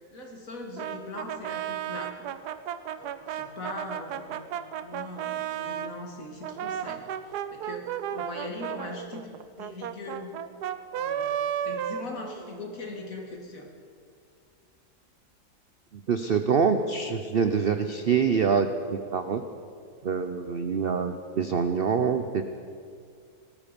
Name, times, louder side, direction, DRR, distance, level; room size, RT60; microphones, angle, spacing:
voice 1, 0.1-2.2 3.0-4.5 4.8-9.3 9.6-10.3 10.9-11.3 11.7-13.7, left 2 dB, 55° left, 0 dB, 2.6 m, -40 dB
Brass instrument, 0.8-5.9 6.4-12.7, right 9 dB, 85° right, 1.3 m, -34 dB
voice 2, 15.9-19.4 20.0-22.6, right 6 dB, 55° right, 8 dB, 0.6 m, -25 dB
19.0 x 13.5 x 5.2 m, 2.3 s
omnidirectional pair, 1.7 m